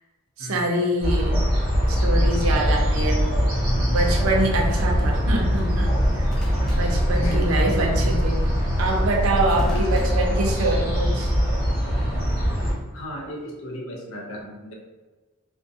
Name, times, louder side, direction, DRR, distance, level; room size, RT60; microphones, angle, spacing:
voice 1, 0.4-1.4 1.9-3.2 3.9-6.2 6.8-8.4 8.8-11.3, right 2 dB, 75° right, 1 dB, 0.5 m, -25 dB
sound 1, 1.0-12.7, equal, 40° right, 0.8 m, -22 dB
sound 2, 2.4-2.8 6.3-7.8 9.6-11.2 12.4-12.8, equal, ahead, 0.4 m, -39 dB
voice 2, 6.9-7.6 9.7-10.0 12.9-14.7, equal, 65° left, 0 dB, 0.5 m, -34 dB
2.5 x 2.1 x 2.5 m, 1.3 s
head